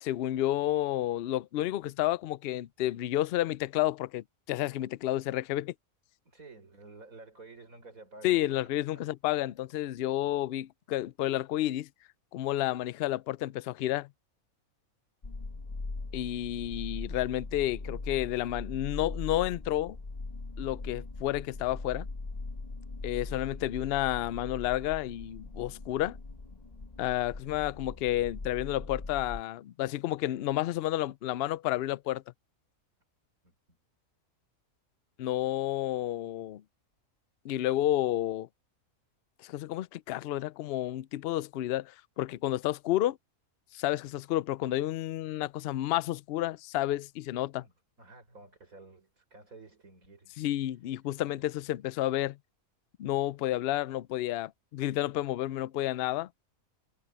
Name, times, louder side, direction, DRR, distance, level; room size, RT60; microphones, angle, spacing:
voice 1, 0.0-5.7 8.2-11.9 12.3-14.1 16.1-20.0 20.6-22.1 23.0-26.2 27.0-32.2 35.2-36.6 37.4-38.5 39.4-43.2 43.7-47.6 50.4-52.4 53.0-56.3, left 14 dB, 65° left, 0.6 m, -31 dB
voice 2, 6.2-8.4 8.8-9.0 33.4-33.5 47.6-50.4 51.2-51.7, right 3 dB, 75° right, 6.4 m, -52 dB
sound 1, 15.2-29.4, left 3 dB, 30° left, 1.2 m, -41 dB
omnidirectional pair, 1.5 m